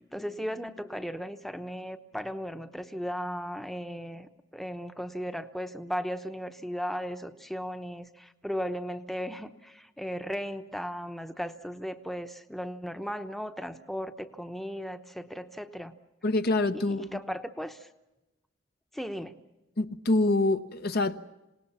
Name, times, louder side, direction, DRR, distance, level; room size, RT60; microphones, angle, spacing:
voice 1, 0.0-15.9 16.7-17.9 18.9-19.4, equal, ahead, 0.9 m, -36 dB
voice 2, 16.2-17.2 19.8-21.2, left 2 dB, 55° left, 0.9 m, -26 dB
27.0 x 19.0 x 7.1 m
head